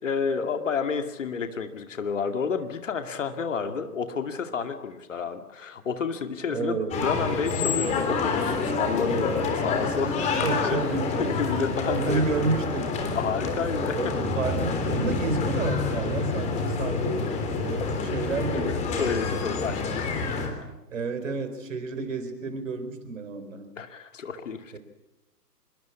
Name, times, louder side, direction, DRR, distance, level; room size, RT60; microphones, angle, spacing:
voice 1, 0.0-10.8 11.2-12.2 13.1-14.2 17.9-18.0 18.6-20.3 23.8-24.8, left 6 dB, 50° left, 7 dB, 2.4 m, -30 dB
voice 2, 6.5-7.1 9.1-9.2 10.4-11.3 11.9-12.9 13.9-18.8 20.9-23.7 24.7-24.8, right 4 dB, 50° right, 9 dB, 4.5 m, -31 dB
sound 1, 6.9-20.5, left 4 dB, 15° left, 3.5 m, -28 dB
25.5 x 22.5 x 8.5 m, 0.99 s
figure-of-eight pair, 130°, 49 cm